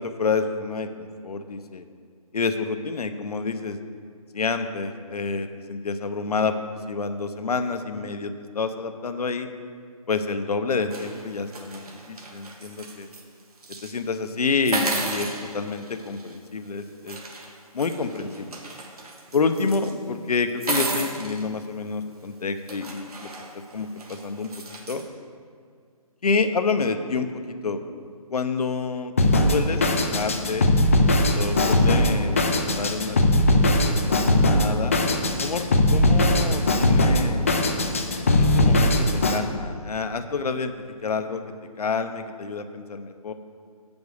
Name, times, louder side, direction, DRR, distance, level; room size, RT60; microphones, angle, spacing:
voice 1, 0.0-1.9 2.3-3.8 4.3-6.6 6.9-9.5 10.1-13.1 13.7-17.2 17.7-18.6 19.3-23.3 23.7-24.5 24.9-25.0 26.2-27.8 28.3-29.1 29.5-30.7 31.2-32.4 32.8-35.0 35.4-37.5 38.4-40.7 41.0-41.4 41.8-43.3, left 4 dB, 75° left, 8 dB, 0.7 m, -28 dB
sound 1, 10.9-13.2 13.6-13.9 14.6-16.4 17.1-19.9 20.5-21.4 22.2-22.3 22.7-25.0, right 3 dB, 75° right, 1.6 m, -34 dB
Drum kit, 29.2-39.4, left 1 dB, 20° left, 0.3 m, -20 dB
8.0 x 5.2 x 6.3 m, 2.1 s
hypercardioid pair, 160°, 20 cm